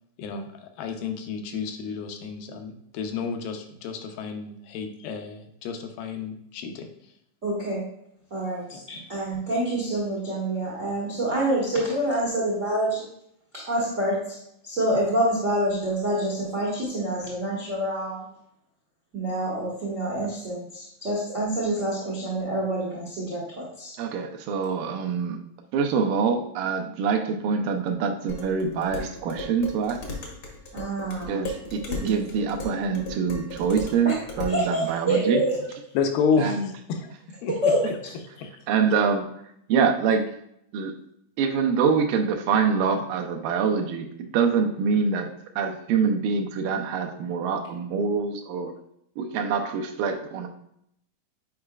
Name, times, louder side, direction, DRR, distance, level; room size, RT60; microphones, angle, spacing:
voice 1, 0.8-6.9 35.9-37.1 37.4-37.5 38.4-38.5, left 5 dB, 85° left, 5 dB, 2.4 m, -30 dB
voice 2, 7.4-7.8 8.3-13.1 13.5-14.4 14.6-18.2 19.1-23.9 30.7-31.5 32.0-32.2 34.0-34.1 34.5-35.6 37.6-37.8, right 1 dB, 70° right, -4 dB, 0.7 m, -27 dB
voice 3, 24.0-25.4 25.7-30.0 31.3-35.4 36.4-36.7 38.7-39.3 39.7-40.3 40.7-40.9 41.4-45.3 45.6-48.7 49.2-50.5, right 6 dB, 85° right, 4 dB, 2.4 m, -25 dB
Dishes pots and pans, 28.3-34.6, left 2 dB, 70° left, 1.2 m, -36 dB
8.6 x 4.8 x 2.3 m, 0.75 s
omnidirectional pair, 3.9 m